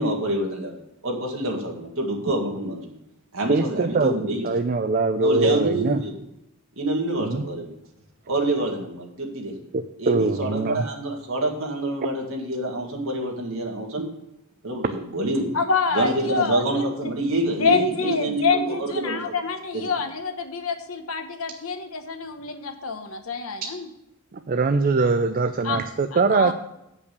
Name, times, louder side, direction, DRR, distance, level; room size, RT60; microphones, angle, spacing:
voice 1, 0.0-3.0 3.3-4.5 5.2-6.2 6.8-7.8 8.3-9.5 10.0-14.1 14.6-15.5 15.9-19.3 19.7-19.8, right 1 dB, 70° right, 1 dB, 2.0 m, -27 dB
voice 2, 3.5-6.0 7.2-7.5 9.7-10.8 24.3-26.5, right 3 dB, 40° right, 8 dB, 0.4 m, -22 dB
voice 3, 15.5-17.1 17.6-23.9 25.6-25.8 26.1-26.5, left 5 dB, 75° left, 6 dB, 1.0 m, -26 dB
8.5 x 5.5 x 6.7 m, 0.85 s
head